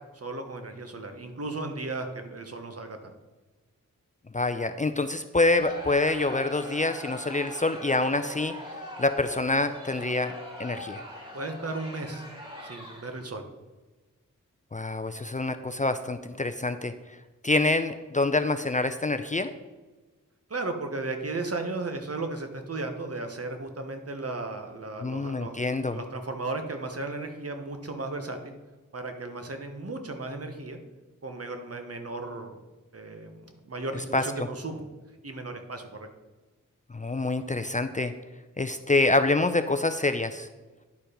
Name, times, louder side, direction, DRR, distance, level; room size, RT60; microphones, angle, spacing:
voice 1, 0.2-3.1 11.3-12.3 12.6-13.4 20.5-25.6 25.9-28.5 28.9-30.8 31.2-32.6 32.9-34.8 35.2-36.0, right 2 dB, 45° right, 6 dB, 1.3 m, -35 dB
voice 2, 4.3-8.5 9.0-10.3 10.6-11.0 14.7-16.9 17.4-19.5 25.0-26.0 34.1-34.2 36.9-38.1 38.6-40.5, left 2 dB, 25° left, 9 dB, 0.5 m, -26 dB
Crowd, 5.6-13.3, left 1 dB, 15° right, 2.8 m, -42 dB
11.0 x 4.4 x 5.0 m, 1.2 s
cardioid pair, 45°, 33 cm